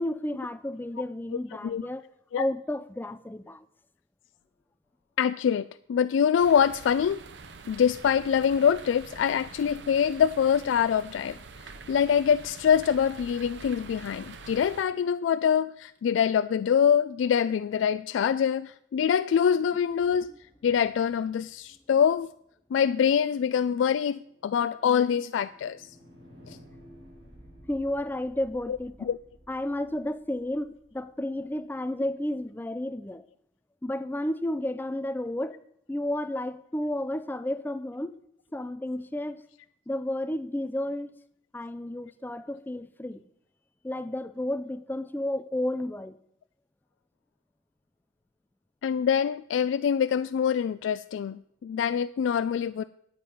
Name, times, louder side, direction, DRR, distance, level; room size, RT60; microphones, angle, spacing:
voice 1, 0.0-2.1 2.4-3.6 20.3-20.4 27.7-29.1 29.5-33.2 33.8-35.6 35.9-38.1 38.5-39.4 39.9-41.2 41.5-43.2 43.8-46.2, left 1 dB, 10° left, 0.4 m, -32 dB
voice 2, 1.3-1.9 2.3-2.5 5.2-7.2 7.7-11.4 11.9-20.3 20.6-22.3 22.7-25.9 26.5-26.6 28.7-28.8 29.1-29.2 48.8-52.8, left 8 dB, 80° left, 0.3 m, -25 dB
sound 1, 6.4-14.8, right 4 dB, 65° right, 0.7 m, -46 dB
sound 2, 19.9-22.0 23.9-31.9, equal, 90° right, 5.7 m, -55 dB
9.2 x 8.8 x 5.7 m
head